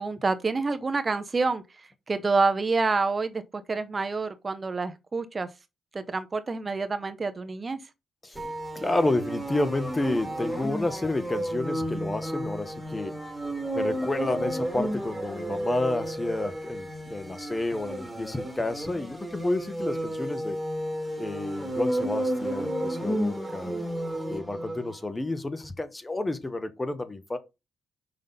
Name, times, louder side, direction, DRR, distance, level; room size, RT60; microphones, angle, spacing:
voice 1, 0.0-1.6 2.1-3.4 3.7-5.5 5.9-7.8, right 3 dB, 25° right, 0.5 m, -27 dB
sound 1, 8.4-25.0, right 1 dB, 5° right, 2.4 m, -32 dB
voice 2, 8.7-13.2 13.7-20.6 21.2-23.8 24.3-27.4, left 2 dB, 15° left, 0.9 m, -30 dB
5.6 x 5.3 x 3.9 m
cardioid pair, 120°, 0 cm